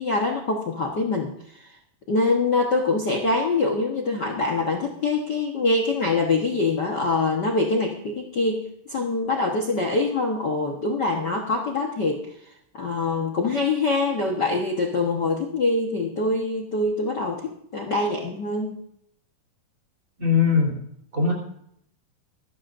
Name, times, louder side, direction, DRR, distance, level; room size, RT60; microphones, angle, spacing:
voice 1, 0.0-1.3 1.6-1.7 2.1-12.2 12.7-18.8, left 3 dB, 80° left, 1 dB, 0.9 m, -24 dB
voice 2, 20.2-20.7 21.1-21.3, left 5 dB, 20° right, 0 dB, 3.9 m, -20 dB
24.0 x 13.0 x 2.6 m, 0.71 s
omnidirectional pair, 4.1 m